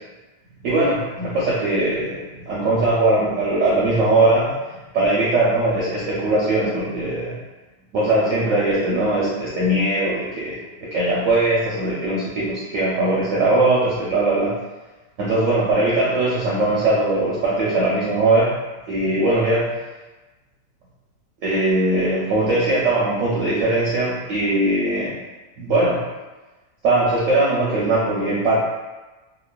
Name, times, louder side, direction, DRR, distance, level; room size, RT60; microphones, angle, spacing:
voice 1, 0.6-4.6 4.9-7.3 7.9-14.5 15.2-18.6 18.9-19.8 21.4-25.2 25.6-26.0 26.8-28.6, right 2 dB, 70° right, -6 dB, 0.8 m, -20 dB
3.0 x 2.1 x 2.2 m, 1.2 s
omnidirectional pair, 1.7 m